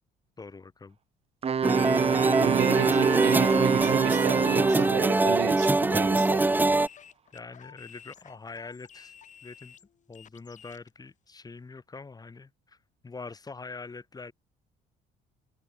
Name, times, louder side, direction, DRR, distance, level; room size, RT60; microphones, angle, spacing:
voice 1, 0.4-1.0 7.3-9.1 9.4-9.8 10.1-12.8 13.0-14.3, left 4 dB, 20° left, 6.0 m, -44 dB
Wind instrument woodwind instrument, 1.4-5.1, right 7 dB, 35° right, 2.3 m, -26 dB
sound 1, 1.6-6.9, right 2 dB, 10° right, 1.0 m, -24 dB
voice 2, 2.4-6.6, right 18 dB, 80° right, 1.2 m, -32 dB
sound 2, 6.0-10.9, left 8 dB, 45° left, 5.6 m, -52 dB
cardioid pair, 110°, 17 cm